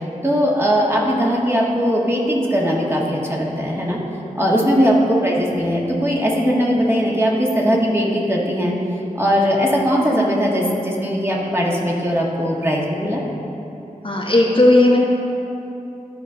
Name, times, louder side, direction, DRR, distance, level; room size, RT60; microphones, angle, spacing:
voice 1, 0.2-4.0 4.3-8.7 9.1-13.2, equal, 15° right, -3 dB, 1.5 m, -19 dB
voice 2, 14.0-15.0, left 1 dB, 40° left, -2 dB, 1.0 m, -15 dB
13.0 x 5.0 x 3.9 m, 2.9 s
wide cardioid pair, 45°, 14 cm